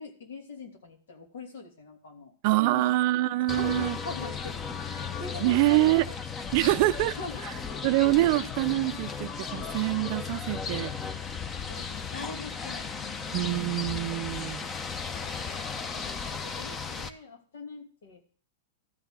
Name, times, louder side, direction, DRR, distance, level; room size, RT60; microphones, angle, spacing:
voice 1, 0.0-2.3 2.6-2.9 3.5-6.2 7.1-7.8 11.7-13.7 15.1-18.3, left 4 dB, 75° left, 2.8 m, -43 dB
voice 2, 2.4-4.0 5.4-6.1 6.5-7.2 7.4-7.5 7.8-10.9 13.3-14.6, right 17 dB, 55° right, 0.4 m, -25 dB
sound 1, 3.5-17.1, left 5 dB, 25° left, 0.9 m, -35 dB
13.0 x 4.5 x 7.4 m
hypercardioid pair, 120°, 0 cm